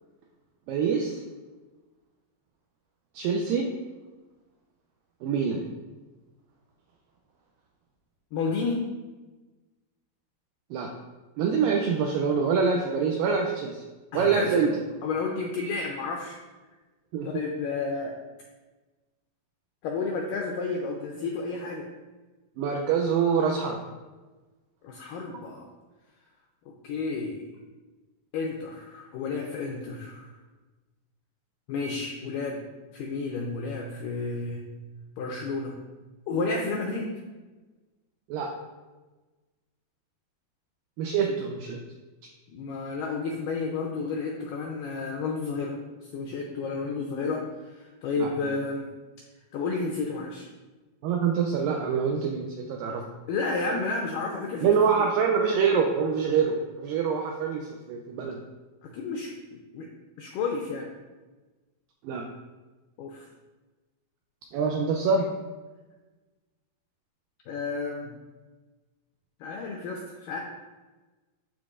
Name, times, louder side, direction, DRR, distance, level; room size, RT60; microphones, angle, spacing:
voice 1, 0.7-1.2 3.2-3.7 5.2-5.7 10.7-10.9 11.4-13.8 14.1-14.7 17.1-17.3 22.6-23.8 38.3-38.5 41.0-41.8 47.0-47.3 48.2-48.3 51.0-53.0 54.6-58.4 62.0-62.2 64.5-65.3, right 6 dB, 85° right, 1 dB, 2.0 m, -25 dB
voice 2, 8.3-8.8 14.1-16.4 17.3-18.1 19.8-21.9 24.8-25.7 26.7-27.5 28.3-30.3 31.7-32.6 32.9-34.6 35.2-35.8 36.3-37.1 42.5-48.9 49.5-50.5 53.3-55.1 58.8-59.9 60.2-60.9 63.0-63.3 67.5-68.1 69.4-70.4, left 4 dB, 90° left, 0 dB, 1.9 m, -31 dB
11.5 x 3.8 x 2.4 m, 1.2 s
omnidirectional pair, 4.5 m